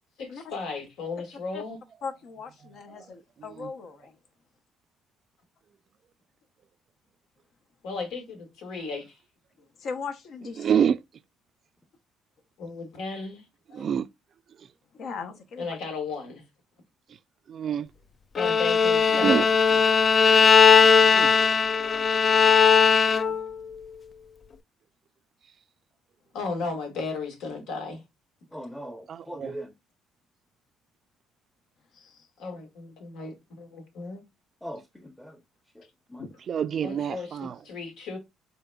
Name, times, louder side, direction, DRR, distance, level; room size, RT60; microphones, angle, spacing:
voice 1, 0.2-1.8 7.8-9.0 12.6-13.4 15.6-16.4 18.3-19.5 26.3-28.0 32.4-34.2 36.8-38.2, left 4 dB, 80° left, 1.5 m, -35 dB
voice 2, 2.0-4.1 9.8-10.7 13.7-13.9 15.0-15.8 31.9-32.3 36.2-36.3, left 5 dB, 65° left, 0.8 m, -38 dB
voice 3, 10.6-11.0 13.7-14.0 17.5-17.9 19.2-19.5 19.7-19.8 21.0-21.3 29.1-29.5 36.5-37.5, right 8 dB, 50° right, 0.3 m, -26 dB
Bowed string instrument, 18.4-23.5, left 6 dB, 40° left, 0.3 m, -19 dB
voice 4, 28.5-29.7 34.6-35.4 35.7-36.2, equal, 5° left, 0.7 m, -40 dB
4.0 x 3.5 x 2.2 m
cardioid pair, 85°, 0 cm